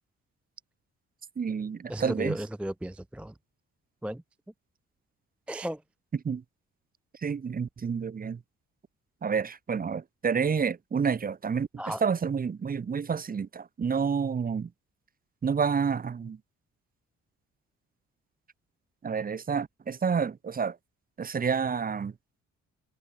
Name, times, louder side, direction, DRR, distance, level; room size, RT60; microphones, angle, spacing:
voice 1, 1.4-2.4 6.2-6.4 7.2-8.4 9.2-14.7 15.4-16.4 19.0-20.8 21.2-22.1, right 6 dB, 30° right, 0.8 m, -29 dB
voice 2, 1.9-3.3 4.0-4.2 5.5-5.8 11.8-12.0, right 1 dB, 5° right, 0.4 m, -34 dB
cardioid pair, 90°, 30 cm